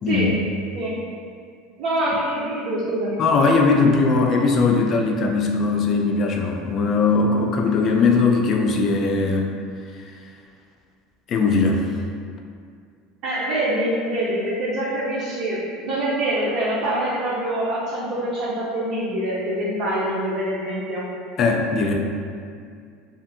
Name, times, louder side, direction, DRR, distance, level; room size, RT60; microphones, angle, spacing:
voice 1, 0.1-0.4 0.7-0.9 1.8-3.2 13.2-21.0, right 1 dB, 60° right, -8 dB, 0.6 m, -25 dB
voice 2, 3.2-9.5 11.3-11.9 21.4-21.9, left 4 dB, 45° left, 2 dB, 0.3 m, -19 dB
2.6 x 2.4 x 2.6 m, 2.2 s
supercardioid pair, 110°, 0 cm